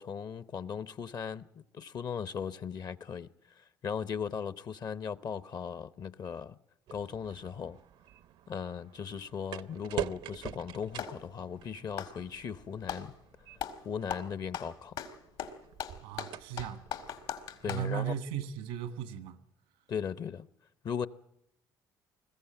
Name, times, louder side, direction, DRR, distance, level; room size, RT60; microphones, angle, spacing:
voice 1, 0.0-6.5 6.9-7.8 8.5-13.1 13.8-15.0 17.6-18.1 19.9-20.5 20.8-21.1, left 7 dB, 45° left, 0.7 m, -38 dB
sound 1, 6.9-17.8, right 10 dB, 65° right, 0.7 m, -45 dB
Clapping, 10.3-11.2 11.9-13.1 13.6-13.8 14.1-17.9, left 9 dB, 70° left, 2.0 m, -39 dB
voice 2, 16.0-16.8 17.7-19.4, right 9 dB, 85° right, 1.5 m, -36 dB
21.0 x 14.5 x 8.8 m
supercardioid pair, 75°, 9 cm